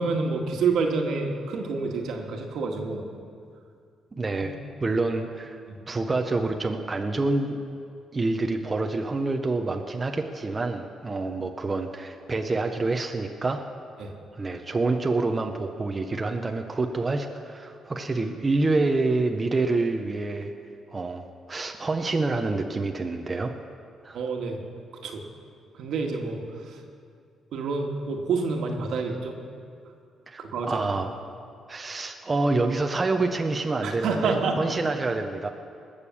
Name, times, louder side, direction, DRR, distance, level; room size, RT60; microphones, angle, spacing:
voice 1, 0.0-3.0 5.7-5.8 14.0-14.1 24.1-24.6 25.0-25.2 25.7-26.8 27.5-29.4 30.4-30.8 33.8-34.6, right 4 dB, 75° right, 2 dB, 1.7 m, -28 dB
voice 2, 4.1-4.5 4.8-5.6 5.9-7.6 8.1-13.6 14.3-20.5 20.9-23.5 24.0-24.2 30.3-31.1 31.7-35.5, right 3 dB, 25° right, 4 dB, 0.8 m, -27 dB
20.0 x 6.7 x 7.2 m, 2.3 s
cardioid pair, 90°, 0 cm